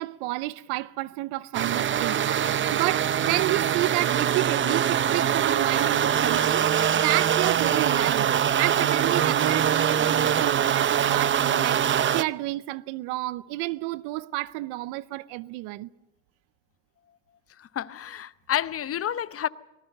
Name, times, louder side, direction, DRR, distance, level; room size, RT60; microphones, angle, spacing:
voice 1, 0.0-15.9, right 19 dB, 75° right, 0.8 m, -31 dB
sound 1, 1.5-12.2, right 9 dB, 30° right, 0.7 m, -23 dB
voice 2, 17.6-19.5, left 10 dB, 35° left, 0.8 m, -30 dB
24.0 x 19.5 x 6.6 m
supercardioid pair, 100°, 41 cm